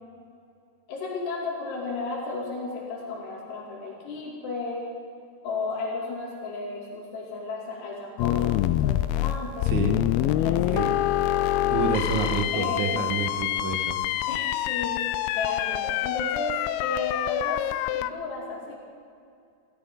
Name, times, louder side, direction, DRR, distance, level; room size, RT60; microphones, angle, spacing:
voice 1, 0.9-4.9 5.4-9.8 10.4-10.8 12.5-13.0 14.3-15.0 15.3-17.6 17.9-18.8, left 3 dB, 70° left, -3 dB, 4.7 m, -33 dB
sound 1, 8.2-18.1, left 14 dB, 85° left, 2.2 m, -26 dB
voice 2, 9.6-10.1 10.7-10.9 11.6-14.0, right 5 dB, 60° right, 4 dB, 2.1 m, -29 dB
29.5 x 13.0 x 3.8 m, 2.5 s
omnidirectional pair, 4.9 m